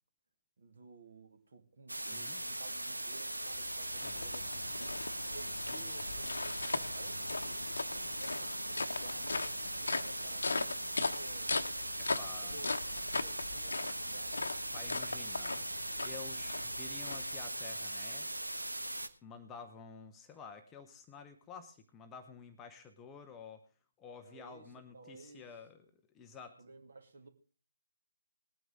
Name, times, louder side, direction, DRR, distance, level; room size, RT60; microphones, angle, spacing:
voice 1, 0.6-4.9 5.3-10.7 11.1-11.7 12.4-12.7 13.2-14.5 24.2-25.5 26.6-27.3, right 3 dB, 45° right, 7 dB, 2.1 m, -55 dB
sound 1, 1.9-19.1, right 1 dB, 80° right, 1.2 m, -40 dB
voice 2, 2.1-2.4 4.0-4.2 12.0-12.7 14.7-18.3 19.2-23.6 24.0-26.6, left 5 dB, 10° left, 7 dB, 0.7 m, -51 dB
sound 2, 3.3-17.7, left 3 dB, 60° left, 1.0 m, -39 dB
20.0 x 9.2 x 3.7 m, 0.37 s
figure-of-eight pair, 150°, 0 cm